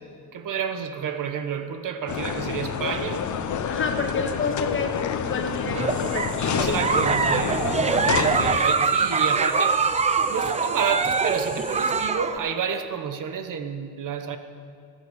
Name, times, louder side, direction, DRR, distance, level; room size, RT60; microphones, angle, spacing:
voice 1, 0.3-3.3 6.6-9.8 10.3-14.4, right 7 dB, 55° right, 8 dB, 1.0 m, -30 dB
sound 1, 2.1-8.6, left 7 dB, 50° left, 0.9 m, -28 dB
voice 2, 3.7-5.0 5.3-6.8 7.4-7.6, left 4 dB, 35° left, 4 dB, 1.5 m, -29 dB
Giggle, 5.7-12.4, right 5 dB, 20° right, 0.4 m, -24 dB
sound 2, 5.9-12.1, left 1 dB, 5° left, 2.7 m, -41 dB
17.5 x 7.2 x 8.3 m, 2.2 s
cardioid pair, 125°, 37 cm